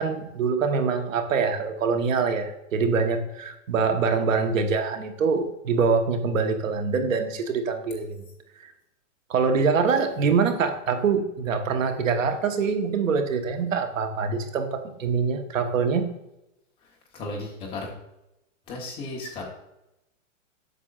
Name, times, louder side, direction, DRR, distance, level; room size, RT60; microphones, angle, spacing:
voice 1, 0.0-8.2 8.6-8.7 9.3-16.1, right 5 dB, 85° right, 6 dB, 1.3 m, -24 dB
voice 2, 16.8-17.9 18.7-19.4, left 2 dB, 15° left, -2 dB, 1.0 m, -35 dB
8.1 x 6.8 x 2.5 m, 0.89 s
hypercardioid pair, 170°, 38 cm